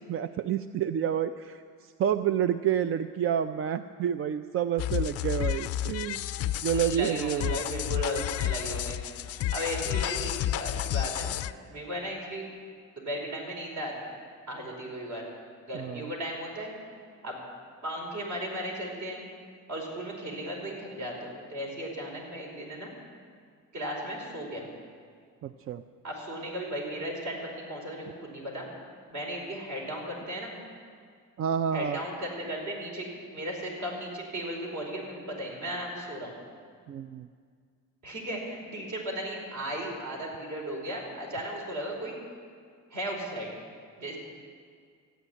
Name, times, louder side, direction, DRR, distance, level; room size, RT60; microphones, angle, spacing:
voice 1, 0.1-6.2 6.6-7.6 15.7-16.1 25.4-25.8 31.4-32.0 36.9-37.3, right 9 dB, 40° right, 11 dB, 0.4 m, -29 dB
sound 1, 4.8-11.5, left 12 dB, 45° left, 0.4 m, -31 dB
voice 2, 6.8-9.0 9.3-11.4 11.7-12.5 13.0-13.9 14.5-15.3 15.7-16.7 17.2-17.4 17.8-19.2 19.7-22.9 23.7-24.7 26.0-28.7 29.1-30.5 31.7-36.3 38.0-42.2 42.9-43.5 44.0-44.2, equal, 55° right, -1 dB, 5.0 m, -36 dB
14.5 x 9.2 x 9.7 m, 2.1 s
cardioid pair, 130°, 33 cm